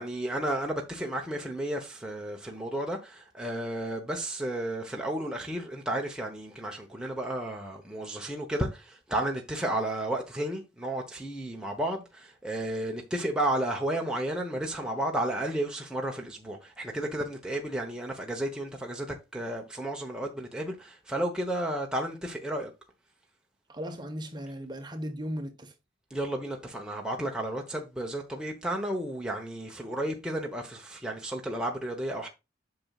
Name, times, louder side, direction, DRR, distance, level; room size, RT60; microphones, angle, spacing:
voice 1, 0.0-22.7 26.1-32.3, right 1 dB, 5° right, 1.1 m, -32 dB
voice 2, 23.7-25.7, equal, 25° right, 1.3 m, -37 dB
8.5 x 6.2 x 2.5 m
head